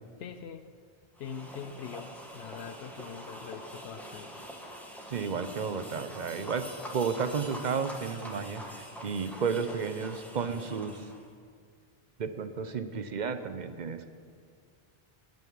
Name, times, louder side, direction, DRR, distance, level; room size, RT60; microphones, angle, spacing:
voice 1, 0.2-0.7 1.2-4.3, left 7 dB, 75° left, 8 dB, 0.8 m, -43 dB
sound 1, 1.2-11.3, equal, ahead, 1.2 m, -45 dB
voice 2, 5.1-6.6 6.9-11.0 12.2-14.0, right 5 dB, 50° right, 10 dB, 0.7 m, -32 dB
9.0 x 7.8 x 9.3 m, 2.1 s
omnidirectional pair, 1.1 m